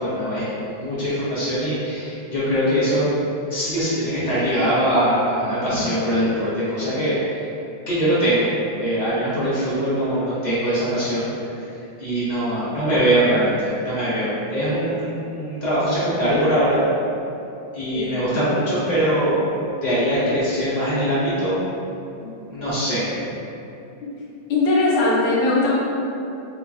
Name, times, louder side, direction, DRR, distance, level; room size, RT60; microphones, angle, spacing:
voice 1, 0.0-3.0 3.5-7.2 7.9-8.5 8.8-11.7 12.0-16.8 17.7-19.4 19.8-21.6 22.5-23.0, equal, 35° left, -12 dB, 0.8 m, -22 dB
voice 2, 24.5-25.8, left 2 dB, 85° left, -6 dB, 1.5 m, -20 dB
3.6 x 2.9 x 2.5 m, 2.8 s
omnidirectional pair, 2.2 m